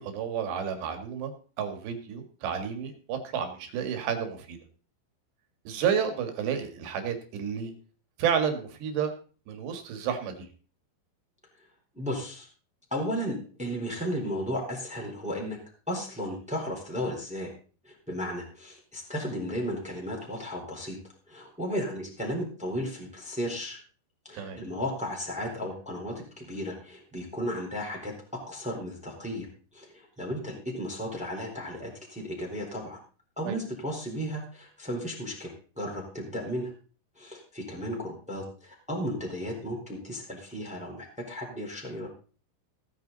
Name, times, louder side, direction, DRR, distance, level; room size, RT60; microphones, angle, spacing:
voice 1, 0.0-1.3 1.6-4.6 5.7-7.7 8.2-9.1 9.5-10.5 24.3-24.6 33.5-33.6, right 7 dB, 85° right, 6 dB, 4.1 m, -31 dB
voice 2, 11.9-12.5 12.9-15.6 15.9-17.5 17.8-21.0 21.3-23.8 24.2-28.1 28.5-29.5 29.7-33.0 33.4-36.7 37.2-42.1, equal, ahead, -1 dB, 3.4 m, -34 dB
17.0 x 9.6 x 4.0 m, 0.39 s
omnidirectional pair, 4.8 m